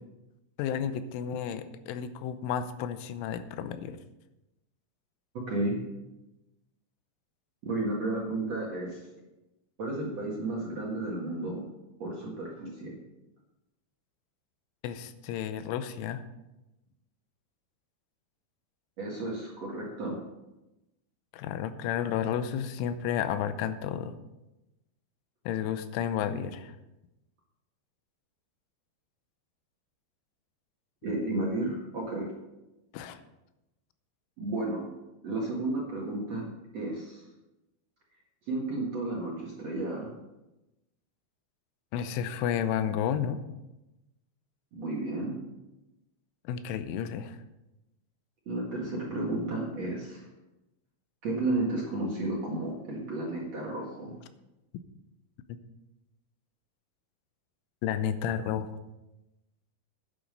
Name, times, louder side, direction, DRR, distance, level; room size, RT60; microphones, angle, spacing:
voice 1, 0.6-4.0 14.8-16.2 21.3-24.2 25.5-26.7 32.9-33.2 41.9-43.4 46.5-47.4 57.8-58.8, left 9 dB, 90° left, 11 dB, 3.2 m, -32 dB
voice 2, 5.3-5.8 7.6-9.0 9.8-11.6 12.0-13.0 19.0-20.2 31.0-32.3 34.4-34.9 35.2-36.5 36.7-37.2 38.5-40.1 44.7-45.4 48.5-50.3 51.2-54.2, right 2 dB, 50° right, -4 dB, 2.1 m, -32 dB
10.0 x 9.4 x 5.3 m, 0.98 s
omnidirectional pair, 5.5 m